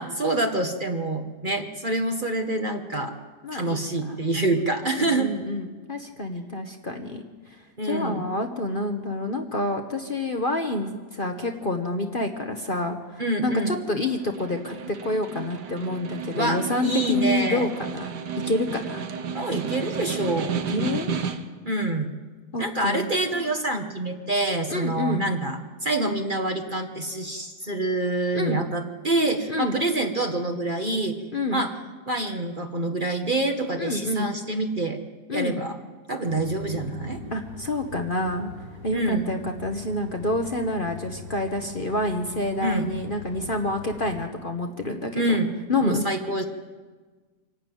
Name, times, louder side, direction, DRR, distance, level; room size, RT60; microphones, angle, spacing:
voice 1, 0.0-3.2 3.5-5.3 7.8-8.2 13.2-13.7 16.3-17.7 19.3-20.6 21.6-22.1 22.6-31.2 31.5-31.7 32.1-35.0 35.3-35.7 36.1-37.2 38.9-39.3 42.6-42.9 45.1-45.5 45.8-46.4, right 2 dB, 30° right, 4 dB, 1.3 m, -26 dB
voice 2, 3.4-4.2 4.8-7.2 7.5-7.6 7.8-18.1 18.4-19.1 20.7-21.1 22.5-23.1 24.7-25.3 28.3-28.6 29.5-29.8 31.3-31.6 33.8-34.3 35.3-35.6 37.3-38.5 38.8-45.4 45.7-46.0, left 2 dB, 35° left, 4 dB, 1.2 m, -28 dB
Snare drum, 14.2-21.7, right 6 dB, 85° right, 1.7 m, -32 dB
sound 1, 36.3-44.3, left 2 dB, 60° right, 3.7 m, -42 dB
25.0 x 12.0 x 9.1 m, 1.4 s
omnidirectional pair, 1.8 m